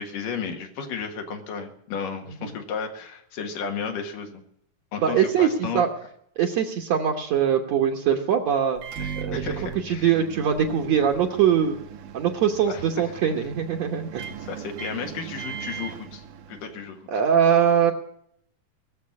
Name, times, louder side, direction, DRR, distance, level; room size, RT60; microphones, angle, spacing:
voice 1, 0.0-4.4 4.9-5.8 9.0-10.2 12.7-12.8 14.4-17.0, left 6 dB, 80° left, 4 dB, 3.3 m, -33 dB
voice 2, 5.0-5.5 5.7-5.9 6.4-8.8 9.2-9.5 9.8-11.8 12.1-14.2 17.1-17.9, right 8 dB, 65° right, 2 dB, 2.0 m, -22 dB
Microwave oven, 8.8-16.9, right 7 dB, 80° right, 2.8 m, -38 dB
19.0 x 7.4 x 9.5 m, 0.69 s
omnidirectional pair, 3.8 m